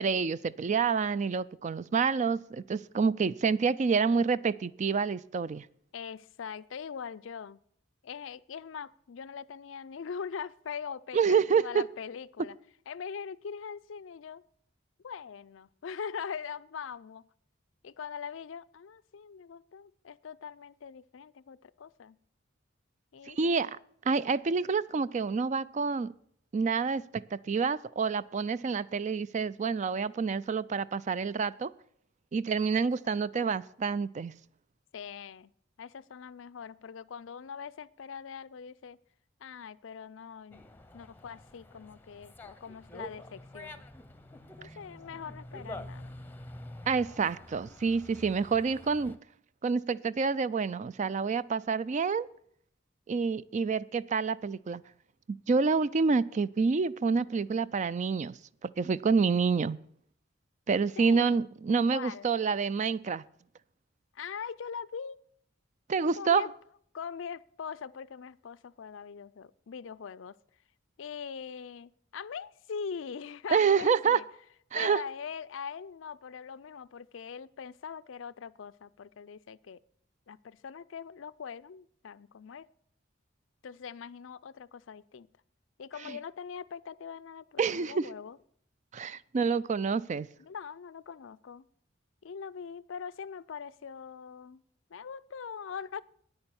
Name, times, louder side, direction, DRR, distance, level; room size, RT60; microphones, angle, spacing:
voice 1, 0.0-5.7 11.1-11.8 23.3-23.8 24.1-26.1 26.5-31.7 32.3-34.3 46.9-49.2 49.6-52.3 53.1-54.8 55.5-58.3 58.6-59.8 60.7-63.2 65.9-66.5 73.5-74.2 74.7-75.0 86.1-86.2 87.6-88.1 88.9-90.3, right 5 dB, 40° right, 0.4 m, -28 dB
voice 2, 5.9-7.6 8.0-12.6 12.9-14.4 15.0-17.3 17.8-22.2 23.1-23.5 32.7-32.9 33.3-33.5 34.9-35.5 35.8-39.0 39.4-40.6 40.9-43.8 44.6-46.1 61.0-61.4 61.9-62.3 64.1-65.2 66.2-66.5 66.9-70.4 71.0-74.2 74.7-79.8 80.3-82.7 83.6-85.3 85.8-88.4 90.4-91.6 92.2-94.6 94.9-96.0, left 6 dB, 80° left, 0.5 m, -42 dB
Dog, 40.5-49.2, left 1 dB, 10° left, 0.8 m, -47 dB
9.7 x 8.9 x 6.9 m
head